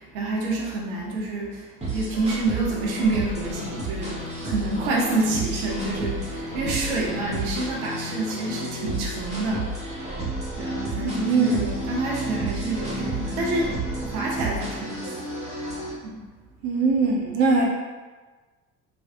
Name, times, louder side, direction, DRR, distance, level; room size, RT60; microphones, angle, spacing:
voice 1, 0.1-1.6 1.9-9.7 10.6-13.8 14.0-15.1 16.0-16.2, right 2 dB, 70° right, -2 dB, 0.8 m, -28 dB
sound 1, 1.8-15.9, right 2 dB, 15° right, 1.1 m, -31 dB
voice 2, 11.0-11.7 16.6-17.7, right 4 dB, 35° right, -1 dB, 0.5 m, -21 dB
3.2 x 2.3 x 2.7 m, 1.3 s
figure-of-eight pair, 60°, 46 cm